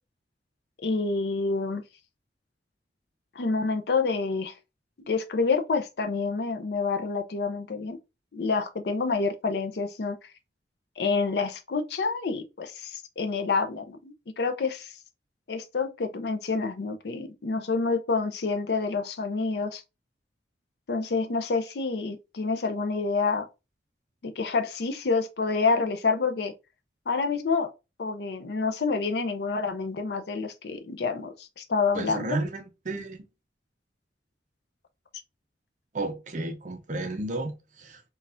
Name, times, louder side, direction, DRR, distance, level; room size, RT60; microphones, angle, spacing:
voice 1, 0.8-1.8 3.4-4.5 5.1-8.0 8.3-10.2 11.0-14.9 15.5-19.8 20.9-23.5 24.2-26.5 27.1-27.7 28.0-32.4, left 4 dB, 60° left, 0.5 m, -28 dB
voice 2, 31.9-33.3 35.9-38.0, right 2 dB, 45° right, 0.6 m, -33 dB
4.0 x 2.3 x 2.5 m
head